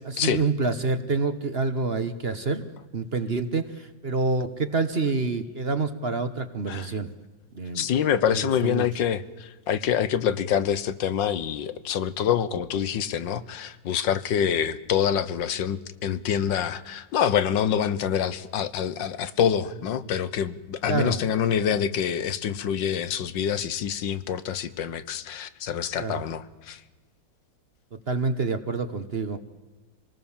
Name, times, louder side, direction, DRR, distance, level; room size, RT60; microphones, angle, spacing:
voice 1, 0.1-2.6 2.9-7.1 7.5-7.8 8.3-8.9 20.9-21.2 26.0-26.2 27.9-29.4, right 4 dB, 40° right, 10 dB, 1.1 m, -27 dB
voice 2, 7.8-26.8, left 8 dB, 80° left, 14 dB, 1.7 m, -26 dB
26.5 x 19.0 x 7.2 m, 1.2 s
omnidirectional pair, 2.0 m